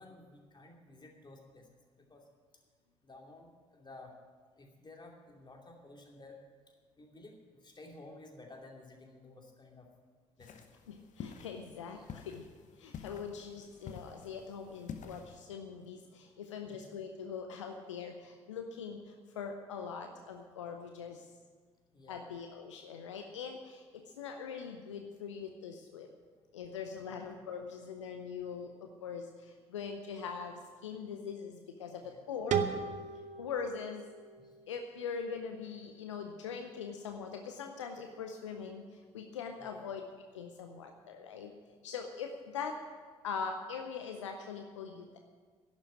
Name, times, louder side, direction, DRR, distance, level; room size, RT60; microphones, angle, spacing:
voice 1, 0.0-1.7 2.0-2.2 2.5-2.6 3.0-4.1 4.5-6.4 6.7-9.9 10.4-10.6 11.9-12.2 16.6-16.8 21.9-22.3 27.0-27.3 32.0-32.2 33.1-33.2 34.4-34.6 39.6-39.8, left 2 dB, 30° left, 1 dB, 2.7 m, -54 dB
sound 1, 10.4-15.4, left 7 dB, 55° left, 1.0 m, -49 dB
voice 2, 10.9-12.4 12.8-19.0 19.4-21.2 22.1-26.1 26.5-29.2 29.7-32.6 33.4-34.0 34.7-38.8 39.1-40.0 40.3-41.5 41.8-42.8 43.2-45.2, left 6 dB, 85° left, 5 dB, 0.6 m, -42 dB
sound 2, 32.5-35.3, right 7 dB, 55° right, 0.9 m, -37 dB
11.5 x 7.4 x 9.9 m, 1.5 s
figure-of-eight pair, 40°, 15 cm